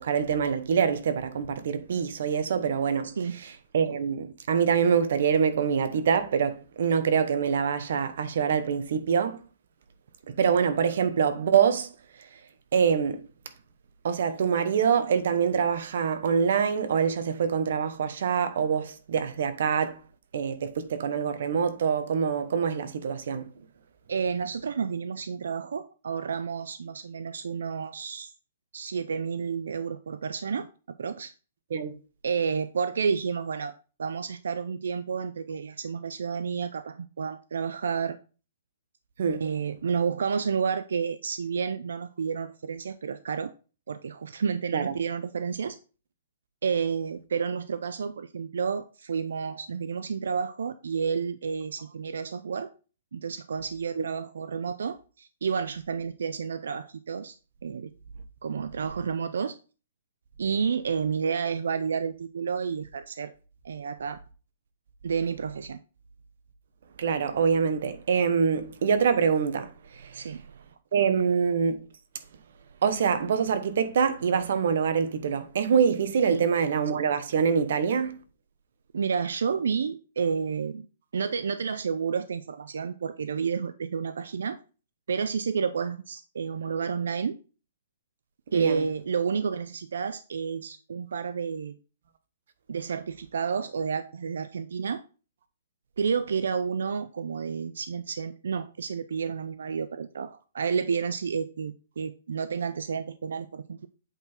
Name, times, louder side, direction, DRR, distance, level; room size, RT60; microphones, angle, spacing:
voice 1, 0.0-3.1 3.7-9.4 10.4-11.9 12.7-13.2 14.0-20.0 20.3-23.5 31.7-31.9 39.2-39.4 44.7-44.9 54.0-54.1 67.0-69.7 70.0-70.1 70.9-71.8 72.8-78.2 88.5-88.8, right 6 dB, 60° right, 0.9 m, -25 dB
voice 2, 3.0-3.4 24.1-28.3 28.7-30.7 31.0-31.3 32.2-38.2 39.4-43.5 43.9-45.8 46.6-52.7 53.1-57.4 57.6-57.9 58.4-59.6 60.4-63.3 63.6-64.2 65.0-65.8 70.1-70.4 76.3-76.4 78.9-80.9 81.1-84.6 85.1-87.4 88.5-91.7 92.7-95.0 96.0-103.9, right 6 dB, 85° right, 0.5 m, -30 dB
8.1 x 4.0 x 4.4 m
hypercardioid pair, 170°, 0 cm